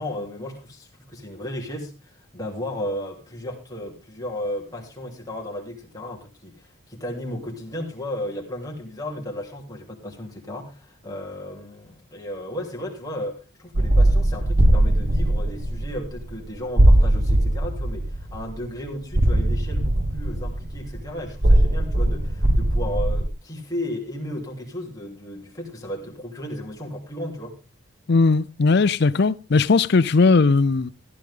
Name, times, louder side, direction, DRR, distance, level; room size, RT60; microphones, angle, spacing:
voice 1, 0.0-27.6, left 1 dB, 15° left, 3.1 m, -34 dB
sound 1, 13.7-16.3 16.8-18.6 19.1-23.3, right 1 dB, 45° right, 1.1 m, -19 dB
voice 2, 28.1-30.9, left 4 dB, 55° left, 0.5 m, -18 dB
15.0 x 10.5 x 3.7 m
head